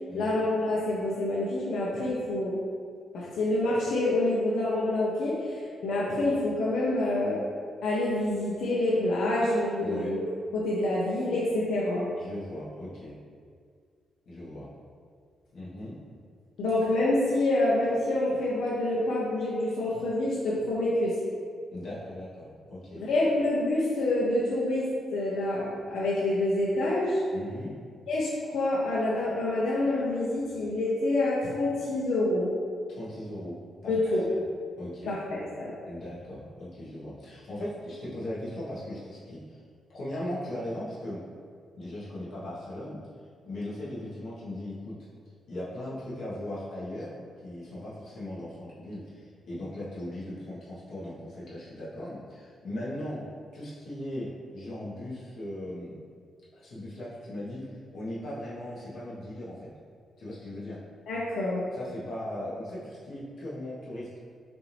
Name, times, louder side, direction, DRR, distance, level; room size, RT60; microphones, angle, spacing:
voice 1, 0.1-2.6 3.1-7.4 7.8-10.2 10.5-12.1 16.6-21.1 23.0-27.2 28.1-32.5 33.9-34.2 35.1-35.7 61.1-61.6, left 1 dB, 90° left, -6 dB, 0.7 m, -27 dB
voice 2, 9.8-10.1 12.1-13.1 14.2-14.7 15.5-16.0 21.7-23.0 27.3-27.8 32.9-33.9 34.8-35.1 35.8-39.6 39.9-41.2 41.8-43.0 43.4-45.0 45.5-53.2 53.5-55.9 56.6-59.7 60.2-60.8 61.7-64.2, left 1 dB, 60° left, -9 dB, 1.3 m, -38 dB
6.0 x 2.6 x 3.3 m, 2.1 s
wide cardioid pair, 170°, 0 cm